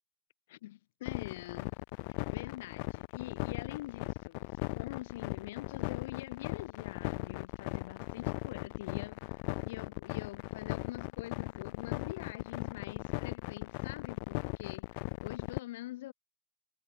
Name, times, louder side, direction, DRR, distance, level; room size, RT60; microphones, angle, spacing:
voice 1, 0.5-1.8 2.3-4.4 4.7-9.4 9.6-14.8 15.2-16.1, left 16 dB, 90° left, 2.9 m, -45 dB
sound 1, 1.1-15.6, left 35 dB, 70° left, 0.5 m, -37 dB
supercardioid pair, 115°, 0 cm